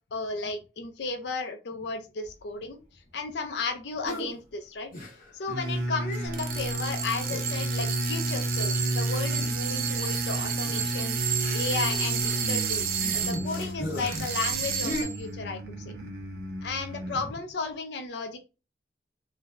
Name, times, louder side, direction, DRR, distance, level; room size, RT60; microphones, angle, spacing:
voice 1, 0.1-2.8 3.1-4.9 5.3-12.8 13.1-15.6 15.9-16.0 16.6-18.4, left 4 dB, 75° left, 7 dB, 0.5 m, -34 dB
sound 1, 4.0-4.3 4.9-5.5 5.7-5.8 6.1-6.6 7.1-7.6 7.9-8.0 8.9-15.0, left 1 dB, 50° left, 0.9 m, -39 dB
sound 2, 5.5-17.4, right 1 dB, 75° right, 0.8 m, -32 dB
sound 3, 6.3-13.7 14.1-15.2, right 8 dB, 50° right, 0.4 m, -31 dB
2.5 x 2.1 x 3.1 m, 0.31 s
head